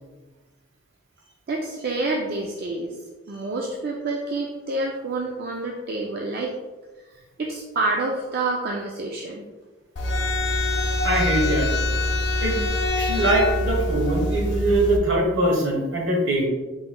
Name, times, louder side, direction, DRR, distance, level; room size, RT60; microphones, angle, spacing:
voice 1, 1.5-3.0 3.3-6.5 7.1-9.4, right 2 dB, 50° right, -1 dB, 0.4 m, -28 dB
sound 1, 10.0-15.0, left 1 dB, 55° left, 0.6 m, -24 dB
voice 2, 11.0-11.7 12.4-12.6 13.0-16.5, right 1 dB, 65° right, -1 dB, 1.0 m, -22 dB
4.4 x 4.3 x 2.2 m, 1.3 s
head